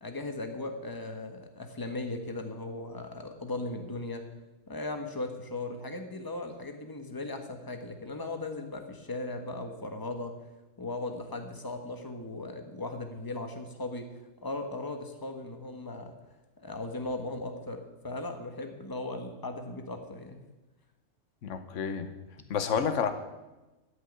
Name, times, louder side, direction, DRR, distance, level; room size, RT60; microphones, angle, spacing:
voice 1, 0.0-4.2 4.7-10.3 10.8-14.1 14.4-16.1 16.6-20.4, left 2 dB, 15° left, 5 dB, 1.3 m, -37 dB
voice 2, 21.4-22.1 22.5-23.1, left 7 dB, 65° left, 9 dB, 1.3 m, -29 dB
14.0 x 6.6 x 9.5 m, 1.1 s
omnidirectional pair, 1.4 m